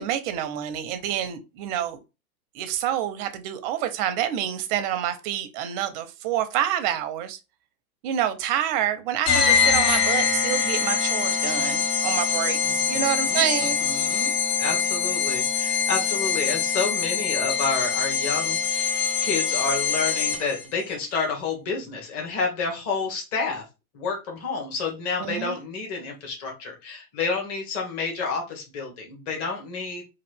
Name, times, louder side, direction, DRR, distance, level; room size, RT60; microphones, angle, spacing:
voice 1, 0.0-2.0 2.5-7.4 8.0-14.4 25.2-25.6, right 11 dB, 35° right, 0.4 m, -28 dB
sound 1, 9.2-20.6, left 7 dB, 60° left, 1.7 m, -24 dB
voice 2, 12.6-13.4 13.8-14.3 14.6-23.6 23.9-30.0, left 4 dB, 30° left, 1.1 m, -29 dB
2.8 x 2.4 x 3.2 m
hypercardioid pair, 120°, 46 cm